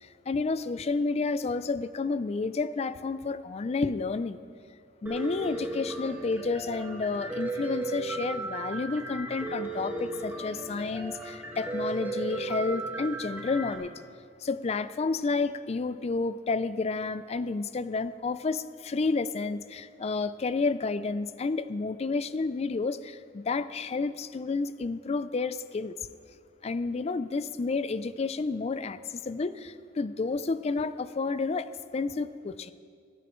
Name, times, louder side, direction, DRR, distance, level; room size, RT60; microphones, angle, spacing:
voice 1, 0.0-4.4 5.0-13.9 14.4-25.9 26.6-32.7, left 4 dB, 35° left, 14 dB, 0.4 m, -30 dB
Piano, 5.1-13.8, right 3 dB, 10° right, 1.7 m, -36 dB
24.0 x 9.2 x 3.1 m, 2.2 s
head